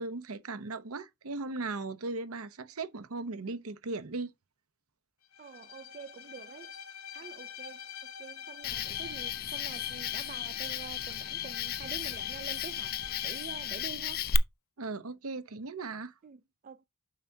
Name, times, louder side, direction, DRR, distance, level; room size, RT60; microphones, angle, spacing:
voice 1, 0.0-4.3 14.8-16.1, right 3 dB, 70° right, 0.9 m, -37 dB
Bowed string instrument, 5.3-14.0, left 7 dB, 65° left, 0.8 m, -46 dB
voice 2, 5.4-6.7 7.1-14.3 16.2-16.9, right 6 dB, 35° right, 0.3 m, -47 dB
Cricket, 8.6-14.4, left 8 dB, 45° left, 0.4 m, -35 dB
7.5 x 5.8 x 2.7 m
head